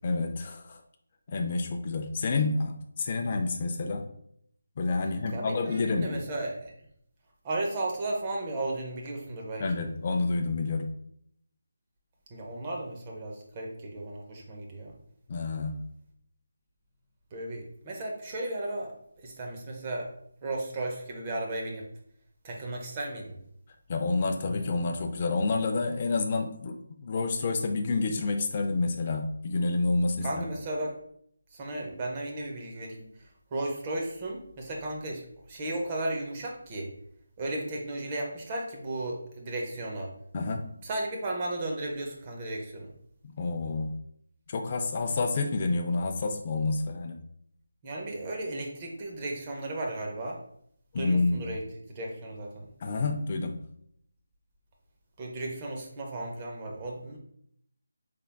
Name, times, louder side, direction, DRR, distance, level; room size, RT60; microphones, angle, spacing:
voice 1, 0.0-0.8 1.3-4.0 4.8-6.2 9.6-10.9 15.3-15.8 23.9-30.5 40.3-40.6 43.2-44.0 44.5-47.2 50.9-51.5 52.8-53.6, left 3 dB, 30° left, 5 dB, 0.4 m, -29 dB
voice 2, 5.2-6.7 7.4-9.9 12.3-14.9 17.3-20.1 20.4-21.9 22.4-23.4 30.2-30.9 31.5-35.2 35.5-36.9 37.4-40.1 40.8-42.9 47.8-50.4 51.0-51.6 51.9-52.7 55.2-57.2, right 2 dB, 20° right, 0 dB, 0.6 m, -35 dB
3.8 x 3.4 x 2.2 m, 0.69 s
figure-of-eight pair, 170°, 0 cm